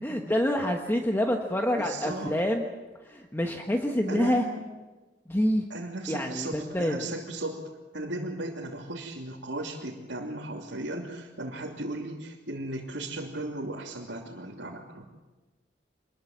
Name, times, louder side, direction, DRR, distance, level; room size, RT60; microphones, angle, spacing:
voice 1, 0.0-2.6 3.1-4.4 5.3-5.6 6.1-7.0, equal, 15° left, 2 dB, 1.4 m, -27 dB
voice 2, 1.8-2.4 4.1-4.7 5.7-7.6 7.9-15.1, right 2 dB, 80° right, -5 dB, 3.1 m, -36 dB
25.5 x 21.5 x 7.4 m, 1.2 s
head